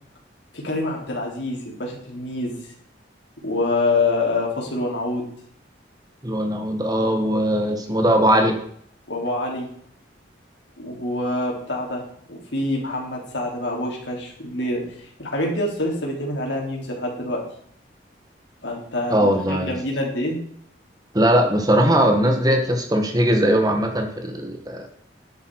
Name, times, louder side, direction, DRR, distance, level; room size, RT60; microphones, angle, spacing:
voice 1, 0.5-2.6 3.4-5.3 9.1-9.7 10.8-17.4 18.6-20.4, left 2 dB, 75° left, 0 dB, 3.6 m, -26 dB
voice 2, 6.2-8.6 19.1-19.8 21.1-24.9, equal, 20° right, 3 dB, 1.7 m, -20 dB
11.0 x 8.4 x 4.8 m, 0.64 s
head